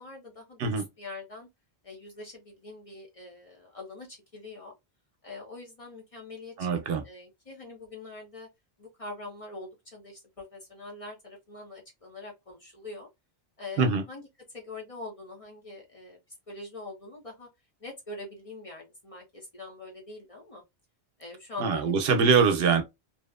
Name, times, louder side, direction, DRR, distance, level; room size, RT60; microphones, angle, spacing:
voice 1, 0.0-1.5 1.8-4.7 5.2-8.5 8.8-13.1 13.6-16.2 16.5-17.5 17.8-20.6 21.2-22.2, left 2 dB, 35° left, 0.7 m, -43 dB
voice 2, 6.6-7.0 13.8-14.0 21.6-22.8, right 5 dB, 70° right, 0.8 m, -23 dB
2.9 x 2.1 x 2.2 m
omnidirectional pair, 1.1 m